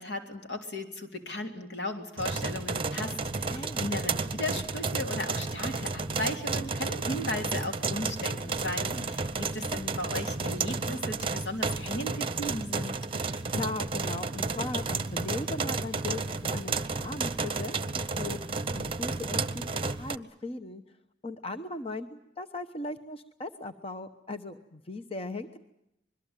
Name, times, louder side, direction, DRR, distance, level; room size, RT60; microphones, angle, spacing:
voice 1, 0.0-13.0, left 1 dB, 70° left, 4 dB, 3.6 m, -36 dB
sound 1, 2.2-20.2, right 4 dB, 30° right, 0.9 m, -32 dB
voice 2, 3.5-3.9 8.9-9.0 13.1-21.0 21.2-25.6, left 2 dB, 35° left, 8 dB, 1.0 m, -38 dB
25.5 x 22.0 x 9.1 m, 0.84 s
head